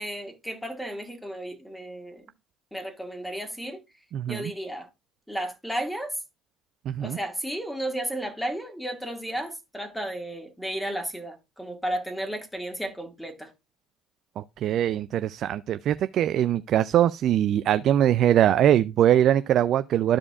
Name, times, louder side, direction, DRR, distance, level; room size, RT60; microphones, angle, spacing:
voice 1, 0.0-2.3 2.7-3.8 4.3-4.9 5.3-6.2 7.0-13.5, right 1 dB, 5° left, 1.9 m, -33 dB
voice 2, 4.1-4.5 6.9-7.2 14.4-20.2, right 11 dB, 60° right, 0.3 m, -22 dB
13.0 x 4.9 x 2.4 m
hypercardioid pair, 70°, 0 cm